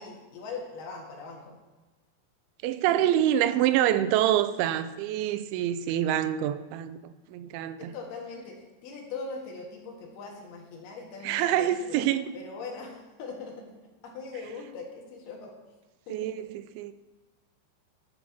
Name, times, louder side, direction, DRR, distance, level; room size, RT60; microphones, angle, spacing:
voice 1, 0.0-1.5 2.9-3.1 7.8-12.0 12.3-13.6 14.0-15.5 16.1-16.4, left 4 dB, 65° left, 3.4 m, -41 dB
voice 2, 2.6-7.9 11.2-12.3 16.1-16.9, right 11 dB, 85° right, 2.9 m, -26 dB
12.5 x 8.2 x 5.8 m
omnidirectional pair, 5.4 m